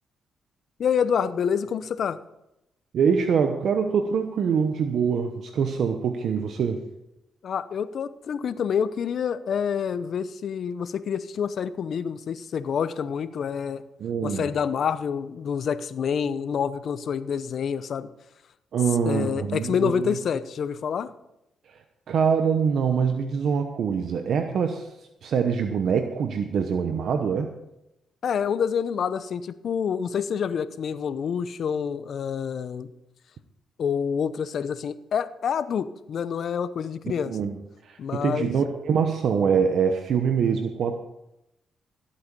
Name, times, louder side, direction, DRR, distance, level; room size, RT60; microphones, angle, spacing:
voice 1, 0.8-2.2 7.4-13.8 14.2-18.1 19.0-21.1 28.2-32.9 33.8-37.4 38.0-38.5, left 7 dB, 65° left, 14 dB, 0.7 m, -27 dB
voice 2, 2.9-6.8 14.0-14.5 18.7-20.2 21.7-21.8 22.1-24.9 25.2-27.5 37.0-37.5 37.8-41.0, right 6 dB, 70° right, 6 dB, 1.0 m, -24 dB
14.5 x 8.6 x 5.4 m, 0.88 s
cardioid pair, 70°, 0 cm